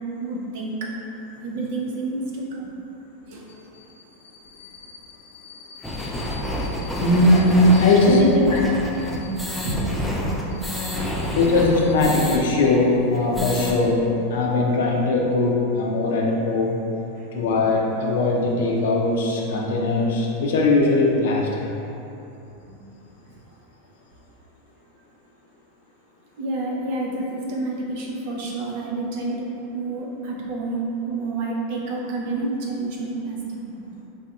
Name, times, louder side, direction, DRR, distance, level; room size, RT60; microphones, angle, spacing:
voice 1, 0.2-0.9 1.4-2.7 3.2-3.6 8.0-8.5 9.1-9.3 9.6-10.8 17.1-17.3 22.7-22.8 26.4-30.8 31.1-33.9, right 2 dB, 60° right, -2 dB, 0.6 m, -28 dB
voice 2, 4.4-8.6 9.0-9.1 10.9-16.8 17.3-21.7, left 2 dB, 70° left, -2 dB, 0.5 m, -21 dB
sound 1, 5.8-12.4 12.7-12.8 13.1-13.7, left 1 dB, 5° left, 0.4 m, -28 dB
3.3 x 2.6 x 2.3 m, 2.9 s
hypercardioid pair, 100°, 0 cm